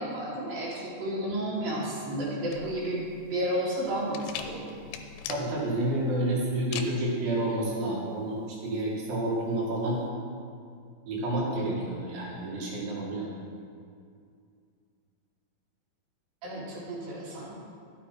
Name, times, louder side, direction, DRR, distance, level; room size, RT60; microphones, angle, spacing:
voice 1, 0.0-3.0 3.3-4.7 16.4-17.5, right 1 dB, 55° right, -5 dB, 3.7 m, -32 dB
sound 1, 2.5-10.0, left 8 dB, 80° left, 2.6 m, -42 dB
voice 2, 5.3-10.0 11.1-13.3, right 1 dB, 80° right, -4 dB, 4.6 m, -29 dB
13.0 x 10.0 x 4.6 m, 2.3 s
omnidirectional pair, 5.2 m